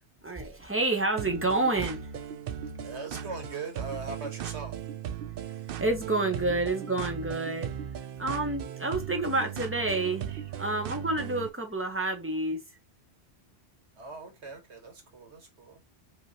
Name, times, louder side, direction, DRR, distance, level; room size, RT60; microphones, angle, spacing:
voice 1, 0.2-2.1 5.8-7.7 8.2-10.3 10.6-12.6, right 2 dB, 15° right, 0.9 m, -29 dB
sound 1, 1.2-11.5, right 9 dB, 65° right, 0.7 m, -37 dB
voice 2, 2.6-4.8 8.8-9.0 10.3-10.5 14.0-15.8, right 3 dB, 80° right, 1.8 m, -41 dB
5.4 x 3.1 x 2.9 m
omnidirectional pair, 1.1 m